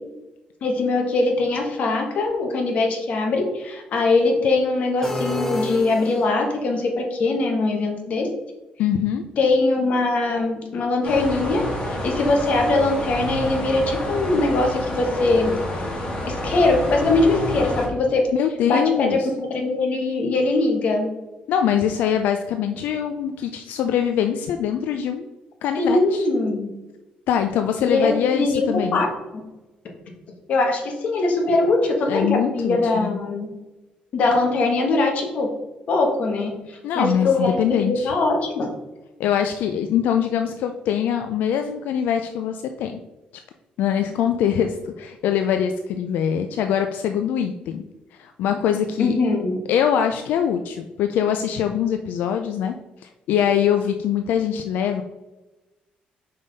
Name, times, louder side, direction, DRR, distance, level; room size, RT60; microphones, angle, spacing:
voice 1, 0.6-8.3 9.4-15.6 16.3-18.3 18.7-19.2 19.5-21.1 25.8-26.7 27.8-29.1 30.5-33.5 34.1-35.5 35.9-38.7 49.0-49.6, left 2 dB, 50° left, 2 dB, 1.4 m, -21 dB
sound 1, 5.0-6.6, equal, 10° left, 0.7 m, -30 dB
voice 2, 8.8-9.2 18.3-19.3 21.5-25.3 25.6-26.2 27.3-29.0 32.1-33.2 36.8-38.1 39.2-43.0 43.8-47.8 48.2-49.2 49.7-52.7 53.0-55.0, left 9 dB, 85° left, 6 dB, 0.4 m, -23 dB
sound 2, 11.0-17.9, left 1 dB, 35° left, 1.7 m, -29 dB
5.5 x 5.1 x 4.0 m, 1.1 s
cardioid pair, 160°, 3 cm